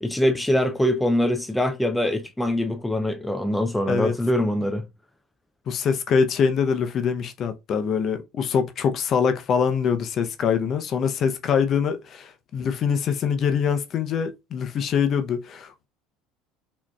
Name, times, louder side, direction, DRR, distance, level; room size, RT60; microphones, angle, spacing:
voice 1, 0.0-4.9, left 1 dB, 5° left, 0.4 m, -23 dB
voice 2, 5.7-15.9, left 6 dB, 45° left, 0.6 m, -24 dB
4.8 x 2.9 x 2.2 m
supercardioid pair, 100°, 0 cm